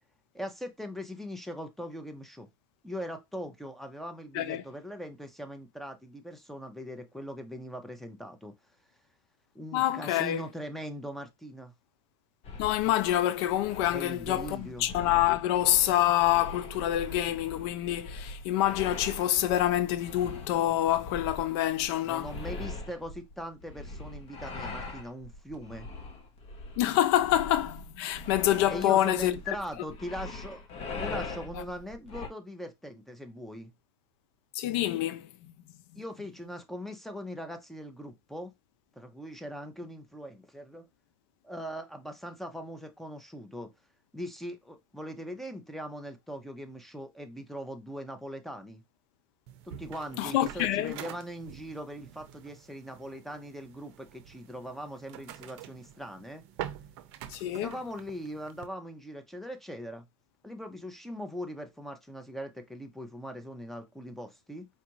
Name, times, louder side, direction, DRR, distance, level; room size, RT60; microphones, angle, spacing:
voice 1, 0.3-2.5 2.8-8.5 9.5-11.7 13.9-14.9 22.0-25.9 28.7-30.6 31.0-33.7 35.9-38.5 39.0-40.9 41.4-43.7 44.1-48.8 49.6-56.4 57.6-60.1 60.4-64.7, equal, ahead, 0.7 m, -40 dB
voice 2, 9.7-10.4 12.6-22.3 26.8-29.6 34.6-35.3 50.2-51.0 57.3-57.7, left 13 dB, 60° left, 0.5 m, -27 dB
sound 1, 12.4-32.3, left 3 dB, 40° left, 1.1 m, -42 dB
sound 2, 49.5-58.7, right 11 dB, 60° right, 0.6 m, -46 dB
4.5 x 2.4 x 3.0 m
hypercardioid pair, 110°, 15 cm